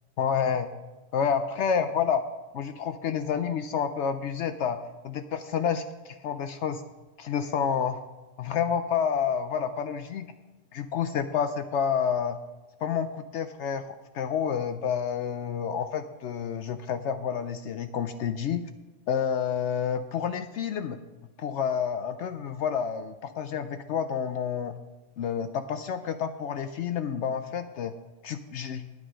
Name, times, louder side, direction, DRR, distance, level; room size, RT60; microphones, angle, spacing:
voice 1, 0.2-0.7 1.1-2.2 2.5-6.8 7.2-8.0 8.4-10.3 10.7-12.4 12.8-18.6 19.1-21.0 21.4-24.8 25.2-27.9 28.2-28.9, left 7 dB, 70° left, 9 dB, 0.8 m, -29 dB
9.4 x 9.3 x 5.1 m, 1.2 s
omnidirectional pair, 1.3 m